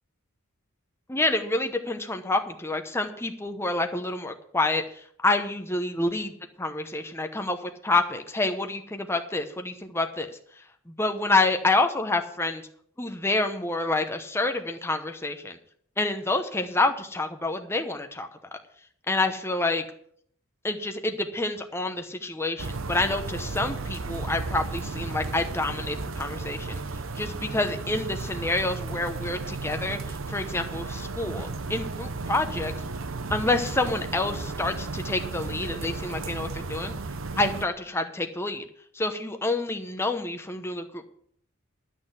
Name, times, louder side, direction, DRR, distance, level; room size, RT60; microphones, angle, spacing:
voice 1, 1.1-4.8 5.2-6.3 6.6-10.4 10.9-12.6 13.0-15.6 16.0-18.3 19.1-19.8 20.6-26.8 27.1-30.0 30.3-32.7 33.3-36.9 37.4-38.6 38.9-41.2, left 2 dB, 10° left, 6 dB, 0.9 m, -28 dB
sound 1, 22.6-37.7, right 3 dB, 65° right, 0.9 m, -34 dB
12.0 x 6.6 x 8.1 m, 0.62 s
head